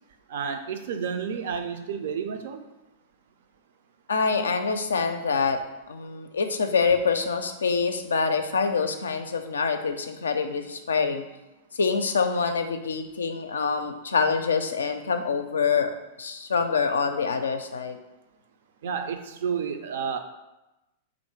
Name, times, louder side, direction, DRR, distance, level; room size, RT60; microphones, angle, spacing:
voice 1, 0.3-2.7 18.8-20.2, right 6 dB, 60° right, 8 dB, 0.4 m, -31 dB
voice 2, 4.1-5.6 5.9-11.2 11.7-15.9 16.2-18.0, left 5 dB, 75° left, 7 dB, 0.4 m, -25 dB
3.5 x 2.5 x 4.5 m, 0.98 s
figure-of-eight pair, 100°, 0 cm